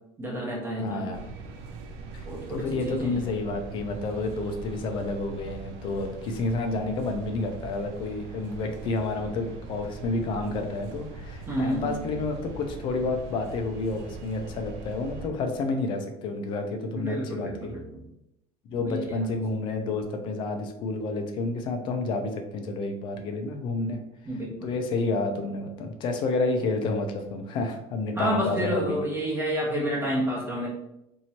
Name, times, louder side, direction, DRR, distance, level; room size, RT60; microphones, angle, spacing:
voice 1, 0.2-1.1 2.2-3.3 11.5-11.9 16.9-18.0 18.7-19.3 24.2-24.7 28.2-30.7, equal, 15° right, -4 dB, 0.9 m, -30 dB
voice 2, 0.8-1.3 2.1-17.7 18.7-24.0 24.6-29.1, left 3 dB, 35° left, 5 dB, 0.5 m, -30 dB
sound 1, 1.1-15.3, right 3 dB, 80° right, 0.6 m, -41 dB
3.0 x 2.7 x 4.2 m, 0.84 s
cardioid pair, 180°, 14 cm